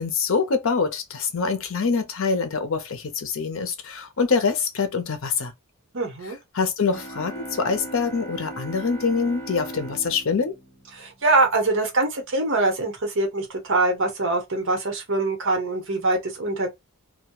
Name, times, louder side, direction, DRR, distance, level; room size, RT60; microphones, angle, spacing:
voice 1, 0.0-5.5 6.5-10.5, left 5 dB, 65° left, 0.6 m, -25 dB
voice 2, 5.9-6.4 10.9-16.7, right 2 dB, 65° right, 0.9 m, -23 dB
sound 1, 6.9-11.5, right 1 dB, 10° left, 0.6 m, -38 dB
2.2 x 2.2 x 2.9 m
head